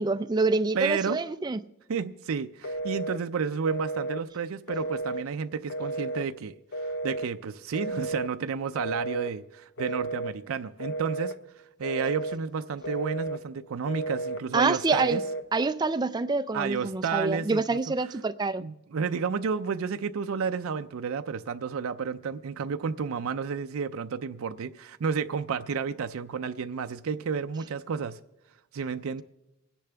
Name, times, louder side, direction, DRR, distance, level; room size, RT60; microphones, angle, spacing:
voice 1, 0.0-1.6 14.5-15.2 15.5-18.6, right 3 dB, 20° right, 0.4 m, -26 dB
voice 2, 0.7-1.2 1.9-11.3 11.8-15.2 16.5-17.8 18.6-28.2 28.7-29.2, right 6 dB, 75° right, 0.4 m, -31 dB
Telephone, 2.6-3.2 3.7-4.2 4.7-5.3 5.7-6.3 6.7-7.3 7.7-8.3 8.8-9.3 9.8-10.4 10.8-11.4 11.8-12.4 12.8-13.4 13.9-14.4 14.9-15.5, right 2 dB, 55° left, 0.8 m, -33 dB
25.5 x 10.0 x 3.4 m
head